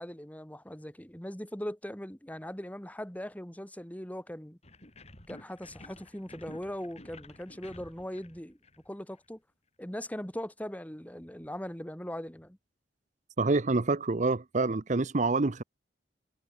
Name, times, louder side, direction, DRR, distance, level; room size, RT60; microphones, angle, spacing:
voice 1, 0.0-4.6 5.3-8.6 8.9-9.4 9.8-12.6, equal, 10° left, 2.1 m, -40 dB
sound 1, 4.6-9.2, left 2 dB, 40° left, 6.3 m, -51 dB
voice 2, 13.4-15.6, right 3 dB, 45° right, 0.8 m, -27 dB
head